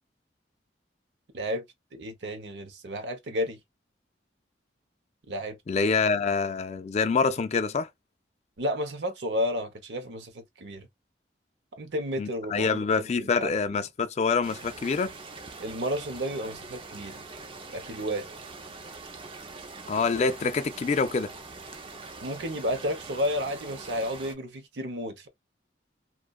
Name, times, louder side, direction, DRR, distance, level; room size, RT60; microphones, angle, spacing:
voice 1, 1.3-1.6 1.9-3.6 5.3-5.9 8.6-10.9 11.8-13.8 15.6-17.2 17.7-18.3 22.2-25.3, equal, 75° right, 0.7 m, -32 dB
voice 2, 5.7-7.9 12.2-15.1 19.9-21.3, left 4 dB, 40° left, 0.3 m, -26 dB
sound 1, 14.4-24.3, right 3 dB, 30° right, 0.4 m, -43 dB
2.6 x 2.3 x 2.2 m
head